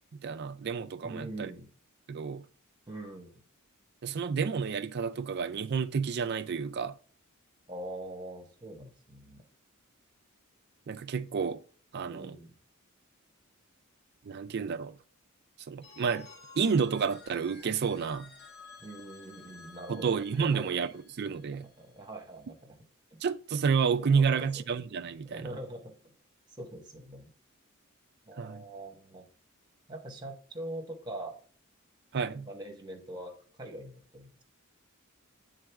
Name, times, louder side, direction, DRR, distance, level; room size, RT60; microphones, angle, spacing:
voice 1, 0.1-1.5 2.1-2.4 4.0-7.0 10.9-11.6 11.9-12.4 14.2-15.0 15.7-16.3 16.6-18.3 19.9-21.7 23.2-25.5 28.4-28.6 32.1-32.5, right 6 dB, 50° right, 0.4 m, -30 dB
voice 2, 1.0-1.7 2.9-3.4 7.7-9.4 12.0-12.5 18.8-20.9 21.8-22.6 23.1-23.2 24.0-24.6 25.2-25.9 26.5-27.3 28.2-29.3 29.9-31.4 32.3-34.4, right 1 dB, 20° right, 1.4 m, -43 dB
Telephone, 15.8-21.6, left 4 dB, 50° left, 2.0 m, -53 dB
8.8 x 4.0 x 3.4 m
head